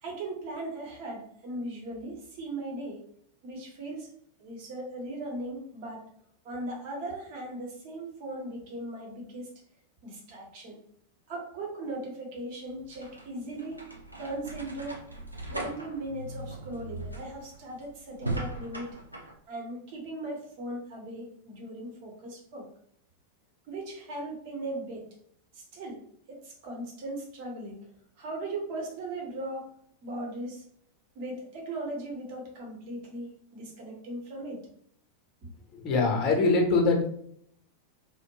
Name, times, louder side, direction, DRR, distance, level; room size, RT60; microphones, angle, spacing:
voice 1, 0.0-3.0 3.4-4.1 4.4-6.1 6.4-9.5 10.0-10.8 11.3-13.8 14.2-15.0 15.5-19.0 19.5-22.7 23.7-25.1 25.5-26.0 26.3-27.9 28.2-29.7 30.0-30.6 31.1-34.6 35.4-35.5, right 1 dB, 45° right, -1 dB, 1.0 m, -38 dB
sound 1, 12.6-19.3, right 1 dB, 85° right, 0.5 m, -39 dB
voice 2, 35.7-37.1, left 3 dB, 35° left, 1 dB, 0.8 m, -23 dB
2.5 x 2.1 x 2.9 m, 0.65 s
figure-of-eight pair, 90°, 0 cm